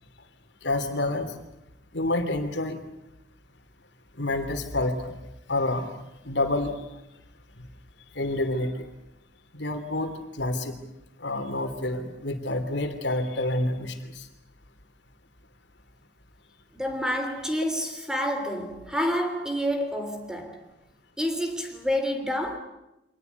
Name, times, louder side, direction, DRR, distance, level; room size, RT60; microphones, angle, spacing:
voice 1, 0.6-1.3 1.9-2.8 4.2-5.2 5.5-5.9 6.3-6.7 8.1-8.9 9.5-10.1 10.4-10.8 11.2-14.2, left 2 dB, 85° left, 3.1 m, -28 dB
voice 2, 16.7-20.6 21.2-22.6, equal, 5° right, 3.0 m, -28 dB
25.0 x 19.0 x 9.3 m
head